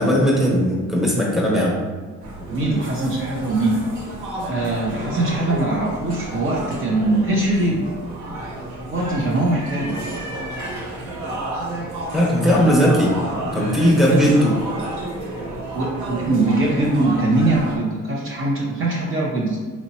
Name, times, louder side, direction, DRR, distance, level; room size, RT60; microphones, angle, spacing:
voice 1, 0.0-1.8 12.1-13.2 13.4-14.5, equal, ahead, -4 dB, 1.1 m, -18 dB
voice 2, 1.5-1.8 2.5-3.8 4.4-7.8 8.9-10.0 14.1-14.2 15.7-19.6, right 2 dB, 45° right, -3 dB, 0.8 m, -22 dB
sound 1, 2.2-17.8, right 1 dB, 75° right, 0.9 m, -31 dB
4.3 x 2.8 x 2.8 m, 1.5 s
cardioid pair, 90°, 30 cm